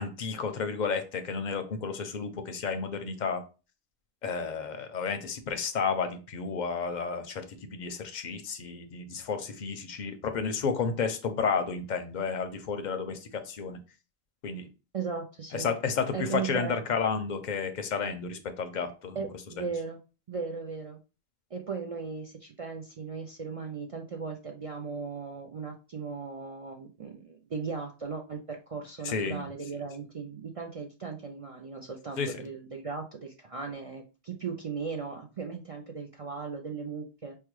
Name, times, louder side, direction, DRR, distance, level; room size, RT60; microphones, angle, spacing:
voice 1, 0.0-3.4 4.2-7.4 7.7-13.8 14.4-14.7 15.5-19.2 19.6-19.7 29.0-29.4 32.2-32.4, left 5 dB, 55° left, 8 dB, 0.6 m, -31 dB
voice 2, 14.9-15.7 16.1-16.8 19.1-20.0 20.3-21.0 21.5-37.4, right 5 dB, 60° right, 2 dB, 0.3 m, -37 dB
4.7 x 2.2 x 3.0 m, 0.32 s
omnidirectional pair, 1.1 m